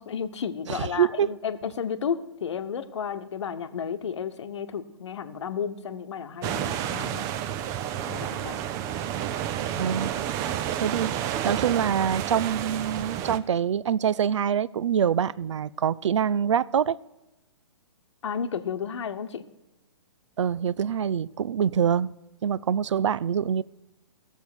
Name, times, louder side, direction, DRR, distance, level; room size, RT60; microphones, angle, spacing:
voice 1, 0.0-7.3 8.1-8.7 18.2-19.4, left 7 dB, 70° left, 1.0 m, -32 dB
voice 2, 0.7-1.3 9.8-10.1 10.8-11.1 11.4-17.0 20.4-22.1 22.4-23.6, right 8 dB, 80° right, 0.4 m, -25 dB
sound 1, 6.4-13.4, right 10 dB, 20° right, 0.5 m, -30 dB
16.0 x 7.1 x 6.1 m
hypercardioid pair, 145°, 15 cm